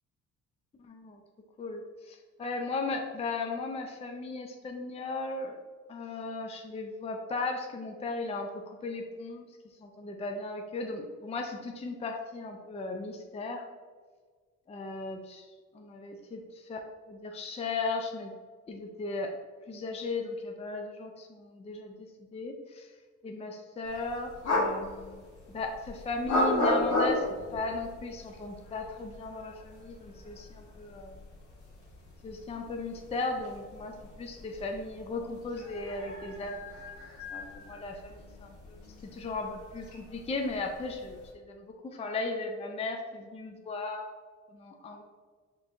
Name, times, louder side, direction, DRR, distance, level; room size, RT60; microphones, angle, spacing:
voice 1, 0.8-1.2 1.6-5.6 5.9-9.4 9.8-13.6 14.7-15.4 15.7-16.8 17.1-18.3 18.7-19.3 19.7-21.9 22.3-22.9 23.2-31.2 32.2-36.9 37.3-38.8 39.1-44.1 44.5-45.0, left 3 dB, 20° left, 3 dB, 0.4 m, -36 dB
sound 1, 23.9-41.3, left 1 dB, 70° left, 1.1 m, -36 dB
4.5 x 3.6 x 2.5 m, 1.5 s
cardioid pair, 90°, 30 cm